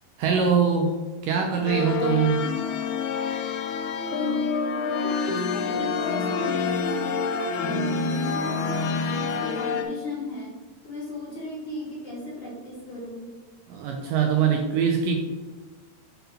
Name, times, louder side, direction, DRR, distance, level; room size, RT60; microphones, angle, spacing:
voice 1, 0.2-1.0 1.2-2.4 13.7-15.2, right 6 dB, 80° right, 2 dB, 2.0 m, -22 dB
sound 1, 1.6-9.8, left 5 dB, 80° left, 2.0 m, -27 dB
voice 2, 3.9-10.5 10.8-13.3, left 1 dB, 50° left, -5 dB, 2.0 m, -36 dB
7.3 x 3.8 x 5.7 m, 1.2 s
omnidirectional pair, 4.6 m